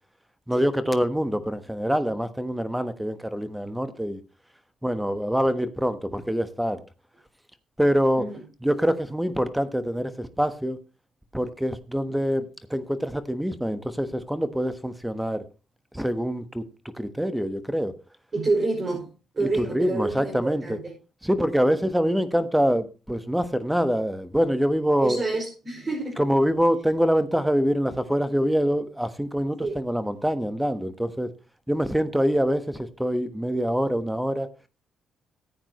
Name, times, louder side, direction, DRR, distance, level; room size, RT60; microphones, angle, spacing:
voice 1, 0.5-4.2 4.8-6.8 7.8-8.3 8.6-10.8 11.3-15.5 15.9-16.6 16.9-17.9 19.4-20.8 21.2-25.2 26.2-31.3 31.7-34.5, equal, 5° right, 1.2 m, -25 dB
voice 2, 18.3-20.9 25.0-26.2 29.6-29.8, right 3 dB, 35° right, 6.0 m, -28 dB
15.0 x 8.9 x 3.0 m
cardioid pair, 90°, 0 cm